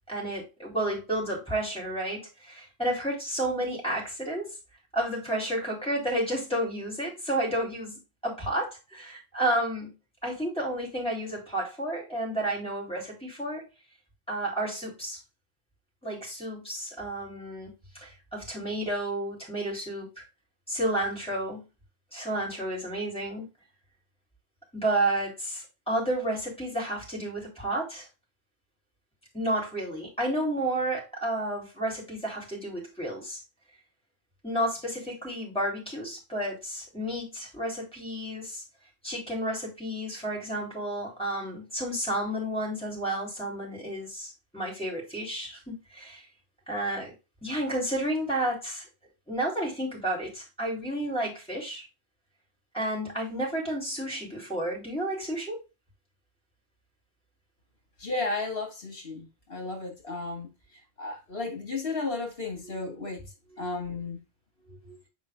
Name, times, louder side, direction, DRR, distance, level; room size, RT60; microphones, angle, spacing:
voice 1, 0.1-4.5 4.9-9.9 10.2-13.7 14.3-15.2 16.0-17.7 18.0-20.2 20.7-21.6 22.1-23.5 24.7-28.1 29.3-33.4 34.4-38.6 39.0-46.2 46.7-47.1 47.4-48.8 49.3-51.9 52.7-55.6, right 1 dB, 5° left, 4.1 m, -31 dB
voice 2, 58.0-60.5 61.0-64.2 64.6-65.0, left 3 dB, 65° left, 2.4 m, -34 dB
7.1 x 4.6 x 3.8 m
omnidirectional pair, 1.0 m